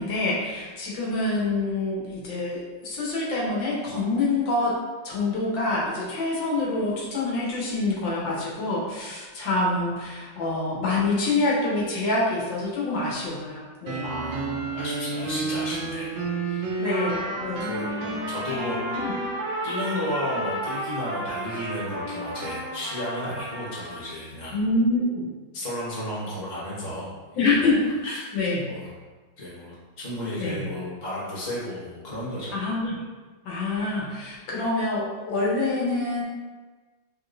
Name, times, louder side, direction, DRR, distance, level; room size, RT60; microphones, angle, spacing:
voice 1, 0.0-4.8 5.0-14.1 16.8-17.7 19.0-19.1 24.5-25.3 27.4-28.7 30.4-30.7 32.5-33.0 33.5-36.2, left 2 dB, 80° left, -5 dB, 1.7 m, -26 dB
sound 1, 13.9-19.4, right 3 dB, 90° right, 1.4 m, -31 dB
voice 2, 14.0-16.2 16.4-16.9 17.6-18.8 19.6-24.6 25.5-27.6 28.1-28.3 28.6-28.9 29.4-32.5, left 1 dB, 25° left, -8 dB, 1.4 m, -33 dB
Trumpet, 16.8-24.1, right 1 dB, 60° right, 1.9 m, -33 dB
6.2 x 3.1 x 2.6 m, 1.3 s
omnidirectional pair, 2.0 m